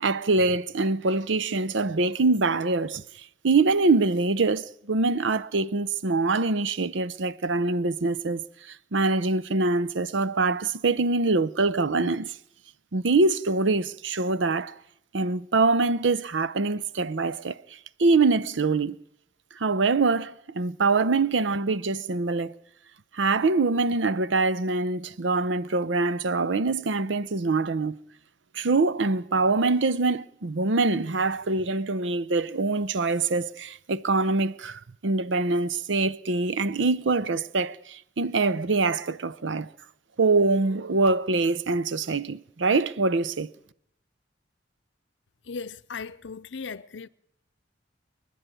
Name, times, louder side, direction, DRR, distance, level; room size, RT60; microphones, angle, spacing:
voice 1, 0.0-12.4 12.9-14.7 15.1-19.0 19.6-22.5 23.1-28.0 28.5-39.7 40.2-43.5, right 3 dB, 80° right, 0.7 m, -24 dB
voice 2, 45.5-47.1, left 5 dB, 70° left, 0.7 m, -37 dB
29.5 x 10.5 x 9.1 m
head